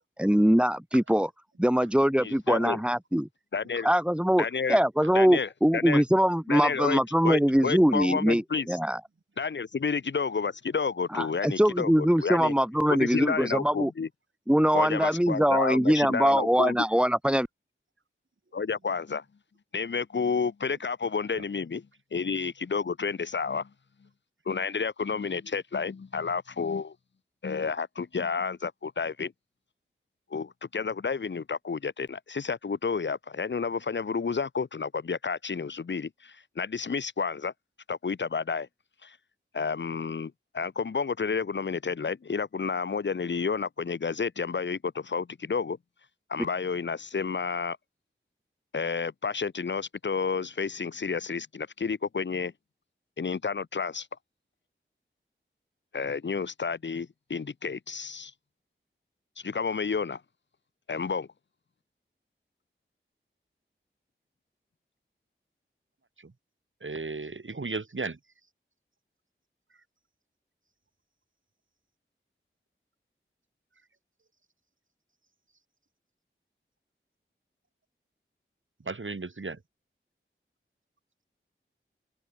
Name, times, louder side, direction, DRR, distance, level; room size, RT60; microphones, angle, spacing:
voice 1, 0.2-1.3 1.6-3.3 3.8-9.0 11.1-13.9 14.5-17.5, equal, 5° right, 1.2 m, -23 dB
voice 2, 2.2-2.8 3.5-3.9 4.4-4.8 5.1-6.0 6.5-8.7 9.4-12.5 12.9-14.1 14.7-16.8 18.5-19.2 19.7-21.9 22.1-23.7 24.5-26.9 27.4-29.3 30.3-37.5 37.9-38.7 39.0-39.2 39.5-45.8 46.3-47.8 48.7-52.5 53.2-54.1 55.9-58.3 59.4-60.2 60.9-61.3, left 5 dB, 60° left, 0.8 m, -30 dB
voice 3, 66.8-68.2 78.8-79.6, right 3 dB, 70° right, 5.0 m, -35 dB
wide cardioid pair, 65°, 21 cm